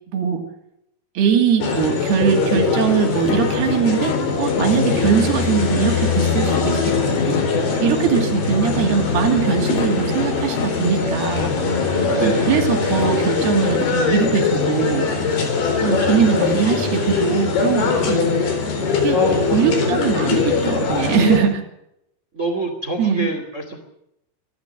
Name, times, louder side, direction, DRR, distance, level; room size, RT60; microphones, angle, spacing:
voice 1, 0.1-0.4 1.2-7.0 7.3-7.4 7.8-11.5 12.2-15.1 15.8-18.5 19.0-19.2 19.5-21.6 23.0-23.3, right 7 dB, 85° right, 4 dB, 4.5 m, -21 dB
sound 1, 1.6-21.4, left 5 dB, 80° left, 5.8 m, -21 dB
sound 2, 3.2-16.1, left 9 dB, 55° left, 2.1 m, -32 dB
voice 2, 12.1-12.8 19.1-19.9 22.3-23.8, right 1 dB, 20° right, 7 dB, 2.5 m, -25 dB
26.0 x 13.5 x 7.4 m, 0.80 s
omnidirectional pair, 4.4 m